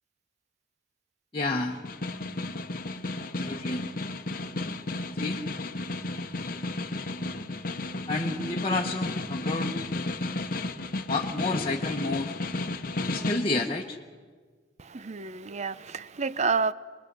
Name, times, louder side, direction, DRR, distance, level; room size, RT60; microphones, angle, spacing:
voice 1, 1.3-1.8 3.2-3.8 5.1-5.4 8.1-9.7 11.1-12.3 13.1-14.0, left 2 dB, 30° left, 1.1 m, -30 dB
Snare drum, 1.7-13.5, left 2 dB, 50° left, 1.0 m, -33 dB
voice 2, 14.8-16.7, right 4 dB, 40° right, 0.6 m, -29 dB
24.0 x 21.5 x 6.8 m
head